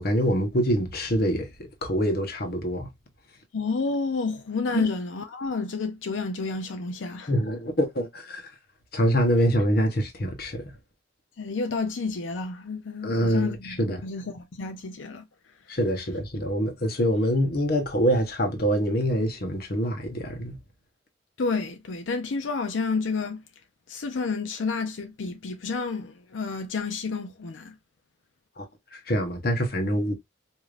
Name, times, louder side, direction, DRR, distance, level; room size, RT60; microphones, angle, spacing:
voice 1, 0.0-1.5 1.8-2.9 4.7-4.9 7.3-8.4 8.9-10.7 13.0-14.0 15.7-20.6 28.6-28.7 28.9-30.1, equal, 50° left, 1.0 m, -25 dB
voice 2, 3.5-7.3 11.4-15.2 21.4-23.4 23.9-27.7, left 4 dB, 85° left, 0.6 m, -30 dB
4.9 x 2.8 x 2.4 m
head